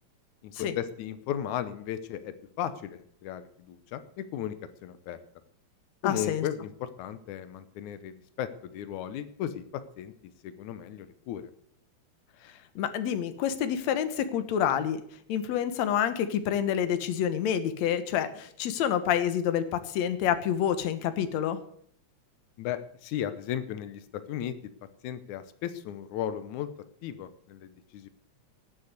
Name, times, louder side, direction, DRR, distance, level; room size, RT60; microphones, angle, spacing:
voice 1, 0.4-4.6 4.8-5.2 6.0-10.1 10.4-11.5 22.6-24.6 25.0-26.7 27.0-28.1, left 10 dB, 90° left, 12 dB, 2.3 m, -35 dB
voice 2, 6.0-6.5 12.4-15.0 15.3-21.6, left 9 dB, 70° left, 10 dB, 2.3 m, -28 dB
18.0 x 6.6 x 8.1 m, 0.63 s
omnidirectional pair, 3.3 m